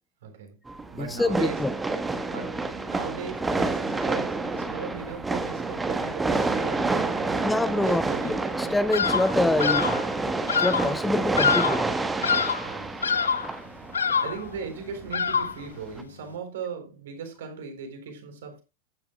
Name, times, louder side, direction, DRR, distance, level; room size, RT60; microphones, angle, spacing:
voice 1, 0.2-0.6 0.9-1.6 2.3-7.4 7.7-8.4 12.2-13.1 14.2-18.6, right 6 dB, 60° right, 3.9 m, -38 dB
sound 1, 0.7-16.0, right 3 dB, 10° right, 1.4 m, -29 dB
voice 2, 1.0-1.7 7.4-9.9 10.6-11.8, left 2 dB, 5° left, 0.7 m, -26 dB
Bird vocalization bird call bird song, 8.9-9.3 9.6-10.0 10.5-10.9 11.4-11.9 12.2-12.7 13.0-13.5 13.9-14.4 15.1-15.6, left 6 dB, 70° left, 0.8 m, -25 dB
14.5 x 10.5 x 2.4 m
figure-of-eight pair, 90°, 0 cm